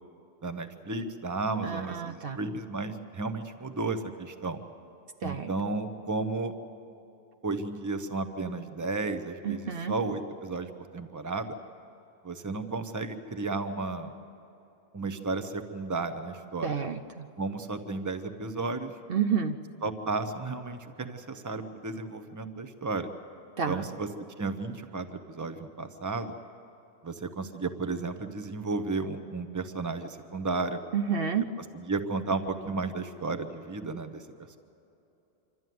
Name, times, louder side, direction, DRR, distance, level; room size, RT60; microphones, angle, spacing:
voice 1, 0.4-4.6 5.2-6.5 7.4-11.5 12.2-14.1 14.9-16.9 17.4-18.9 19.8-23.1 23.7-24.1 24.4-26.3 27.0-30.8 31.7-34.2, right 3 dB, 15° right, 9 dB, 0.9 m, -33 dB
voice 2, 1.6-2.4 5.2-5.5 9.4-9.9 16.6-17.3 19.1-19.6 23.6-23.9 30.9-31.4, right 7 dB, 60° right, 7 dB, 0.9 m, -30 dB
26.5 x 12.5 x 9.4 m, 2.9 s
omnidirectional pair, 1.2 m